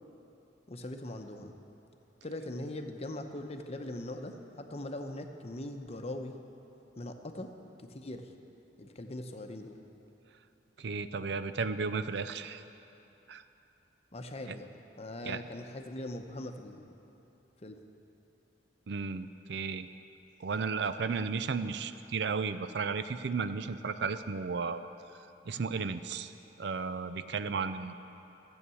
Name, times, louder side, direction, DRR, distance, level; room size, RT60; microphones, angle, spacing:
voice 1, 0.7-1.5 2.2-6.4 7.0-7.5 7.8-8.3 8.8-9.8 14.1-14.7 15.0-16.9 17.6-17.8, left 1 dB, 35° left, 5 dB, 0.8 m, -41 dB
voice 2, 10.8-12.6 13.3-13.4 15.3-15.4 18.9-19.9 20.4-24.8 25.5-26.3 26.6-27.9, right 5 dB, 70° right, 12 dB, 0.5 m, -34 dB
14.0 x 8.1 x 6.9 m, 2.9 s
head